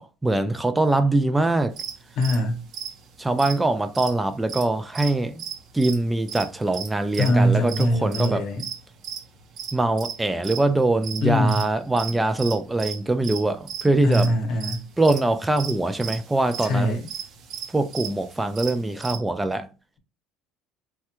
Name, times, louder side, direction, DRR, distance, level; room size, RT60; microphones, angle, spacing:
voice 1, 0.0-1.7 3.2-5.4 5.7-8.4 9.7-14.3 15.0-17.0 17.7-19.7, right 2 dB, 10° right, 0.3 m, -23 dB
sound 1, 1.7-5.1 5.4-10.6 11.0-13.4 13.7-13.9 14.1-14.3 14.6-19.2, right 8 dB, 55° right, 0.7 m, -35 dB
voice 2, 2.2-2.6 7.2-8.6 11.2-11.6 14.0-14.8 16.6-17.0, equal, 65° left, 0.9 m, -22 dB
3.2 x 2.3 x 2.9 m
supercardioid pair, 90°, 0 cm